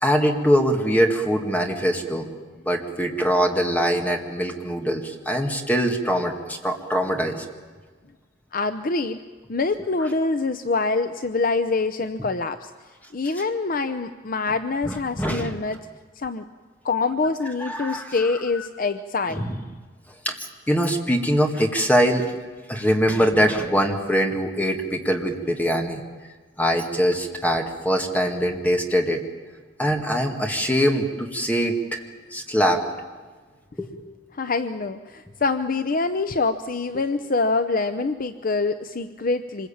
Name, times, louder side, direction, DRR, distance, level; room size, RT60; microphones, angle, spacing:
voice 1, 0.0-2.3 2.7-7.4 14.9-15.5 17.6-18.2 18.6-18.7 19.3-19.6 20.3-22.2 22.7-26.0 26.6-29.2 29.8-32.0 32.3-32.8 33.8-33.9, equal, 10° left, 3 dB, 2.1 m, -23 dB
voice 2, 8.5-9.2 9.5-12.7 13.1-15.8 16.2-16.4 16.8-19.5 34.3-39.7, left 3 dB, 45° left, 10 dB, 0.7 m, -25 dB
25.5 x 21.0 x 8.7 m, 1.4 s
head